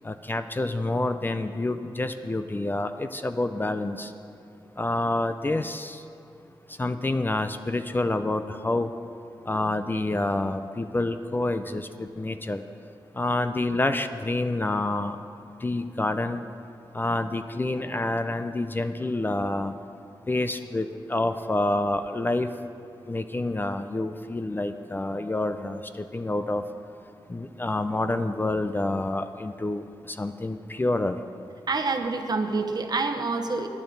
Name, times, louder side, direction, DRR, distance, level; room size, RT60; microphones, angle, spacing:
voice 1, 0.0-4.1 4.8-6.0 6.8-8.9 9.5-12.6 13.2-15.2 15.6-16.4 16.9-19.7 20.3-22.5 23.1-26.6 27.3-31.2, left 2 dB, 20° left, 9 dB, 0.4 m, -28 dB
voice 2, 31.7-33.7, right 3 dB, 50° right, 5 dB, 1.0 m, -27 dB
19.0 x 9.9 x 3.9 m, 2.7 s
wide cardioid pair, 105°, 9 cm